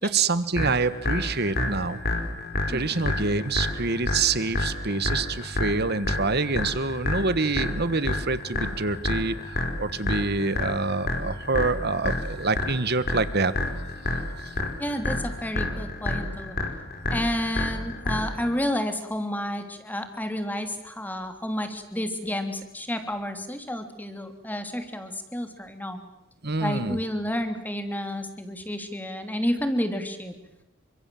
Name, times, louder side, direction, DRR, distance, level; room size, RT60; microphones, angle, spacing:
voice 1, 0.0-2.0 2.7-13.5 26.4-27.0, right 3 dB, 50° right, 14 dB, 1.5 m, -26 dB
sound 1, 0.6-18.5, left 2 dB, 45° left, 4.8 m, -29 dB
voice 2, 2.7-3.1 14.8-16.6 17.1-26.0 26.6-30.4, left 1 dB, 10° left, 7 dB, 2.9 m, -30 dB
28.0 x 25.0 x 7.7 m, 0.85 s
head